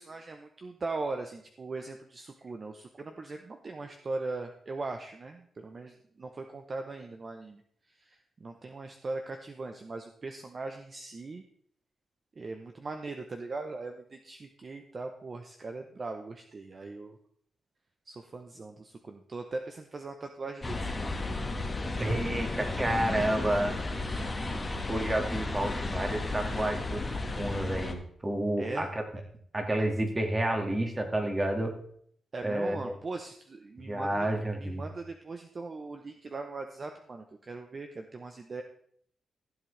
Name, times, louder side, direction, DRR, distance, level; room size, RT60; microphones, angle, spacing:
voice 1, 0.0-7.6 7.9-11.4 12.4-17.2 18.1-21.2 24.1-24.7 28.6-28.9 32.3-34.3 34.6-38.6, right 3 dB, 40° right, 5 dB, 0.9 m, -40 dB
sound 1, 20.6-27.9, left 2 dB, 25° left, 1.5 m, -33 dB
voice 2, 22.0-23.8 24.9-27.0 27.4-29.0 29.5-31.8 32.4-32.9 33.9-34.8, right 1 dB, 20° right, 4 dB, 2.0 m, -30 dB
15.5 x 7.7 x 3.3 m, 0.64 s
cardioid pair, 95°, 0 cm